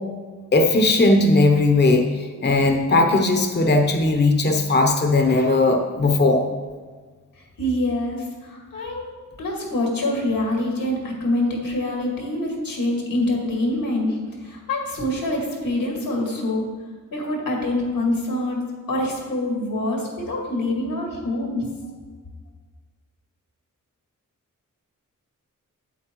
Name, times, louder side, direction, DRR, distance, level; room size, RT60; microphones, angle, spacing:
voice 1, 0.5-6.5, left 2 dB, 30° left, 4 dB, 0.8 m, -18 dB
voice 2, 7.6-9.0 9.4-16.7 17.1-18.6 18.9-21.9, left 1 dB, 85° left, -1 dB, 2.0 m, -25 dB
8.3 x 8.1 x 3.0 m, 1.4 s
cardioid pair, 55°, 33 cm